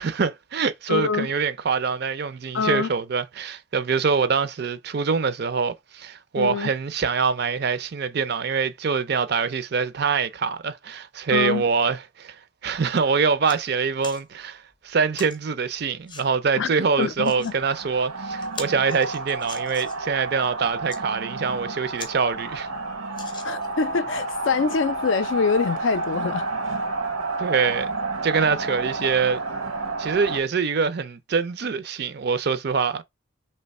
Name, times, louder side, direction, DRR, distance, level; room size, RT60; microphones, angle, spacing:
voice 1, 0.0-12.4 12.6-22.7 27.4-27.9 28.2-29.4 30.0-33.0, right 5 dB, 50° right, 0.4 m, -24 dB
voice 2, 0.9-1.3 2.5-2.9 6.4-6.7 11.3-11.6 16.6-17.5 23.4-26.5, left 5 dB, 60° left, 0.4 m, -25 dB
sound 1, 12.8-12.9 13.2-13.6 14.0-14.2 15.1-15.4 16.1-16.3 17.0-17.5 18.0-18.1 18.4-20.1 20.7-21.0 21.6-21.7 22.0-22.1 22.5-22.6 23.1-23.8 24.5-24.6, left 4 dB, 20° left, 0.7 m, -40 dB
sound 2, 17.4-30.4, right 3 dB, 90° right, 0.8 m, -30 dB
3.3 x 3.0 x 4.1 m
head